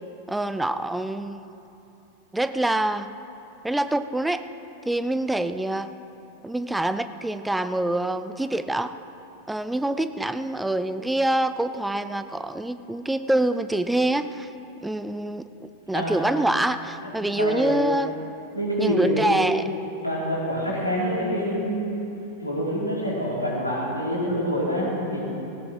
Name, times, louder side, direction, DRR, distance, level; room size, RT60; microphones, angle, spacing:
voice 1, 0.3-1.5 2.3-3.1 3.6-4.4 4.9-5.9 6.4-9.0 9.5-14.5 14.8-18.1 18.8-19.8, right 1 dB, 5° right, 11 dB, 0.6 m, -25 dB
voice 2, 17.0-17.9 18.5-19.3 20.0-22.1 22.4-25.2, equal, 85° left, -6 dB, 4.7 m, -26 dB
18.5 x 16.5 x 4.8 m, 2.9 s
figure-of-eight pair, 90°, 0 cm